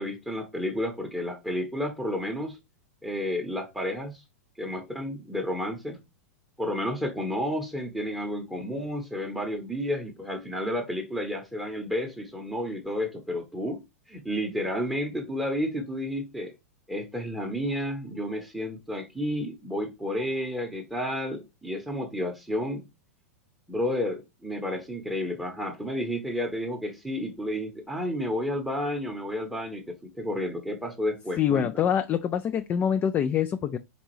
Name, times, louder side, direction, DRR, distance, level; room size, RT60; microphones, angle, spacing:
voice 1, 0.0-2.6 3.0-4.2 4.6-6.0 6.6-16.5 16.9-22.8 23.7-31.7, left 1 dB, 5° right, 0.9 m, -31 dB
voice 2, 31.4-33.8, left 8 dB, 25° left, 0.3 m, -25 dB
4.3 x 4.1 x 3.0 m
figure-of-eight pair, 100°, 8 cm